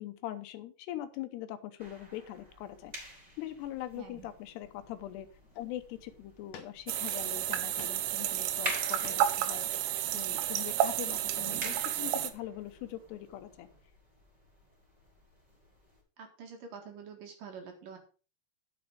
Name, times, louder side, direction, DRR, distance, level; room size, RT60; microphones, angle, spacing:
voice 1, 0.0-5.3 5.6-13.7, left 13 dB, 80° left, 10 dB, 2.8 m, -42 dB
sound 1, 1.8-16.0, right 1 dB, 10° right, 3.6 m, -47 dB
sound 2, 3.1-3.3 3.8-4.5 5.0-5.1 5.4-5.9 6.5-7.2 7.5-8.1 8.5-9.5, left 7 dB, 65° left, 2.2 m, -53 dB
sound 3, 6.9-12.3, right 11 dB, 80° right, 2.7 m, -31 dB
voice 2, 16.2-18.0, right 6 dB, 60° right, 3 dB, 3.1 m, -46 dB
10.0 x 6.9 x 5.1 m, 0.36 s
omnidirectional pair, 5.0 m